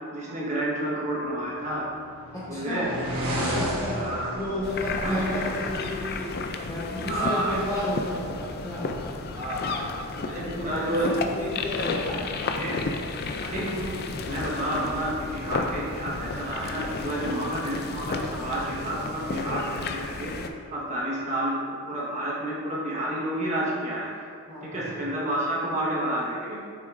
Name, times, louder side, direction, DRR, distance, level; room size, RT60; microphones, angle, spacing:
voice 1, 0.1-1.9 2.5-2.9 3.9-4.3 5.0-5.2 7.1-7.5 9.3-10.0 10.3-11.1 12.4-12.8 13.4-20.3 20.7-24.3 24.6-26.7, right 1 dB, 30° right, -5 dB, 1.3 m, -30 dB
sound 1, 1.5-6.5, equal, 75° right, 1.2 m, -33 dB
voice 2, 2.3-4.1 4.3-6.3 6.7-9.0 9.7-9.9 10.4-12.2 24.5-24.9, left 1 dB, 15° left, -9 dB, 1.2 m, -32 dB
sound 2, 4.6-20.5, left 3 dB, 45° left, 0.4 m, -33 dB
7.5 x 5.9 x 2.6 m, 2.1 s
head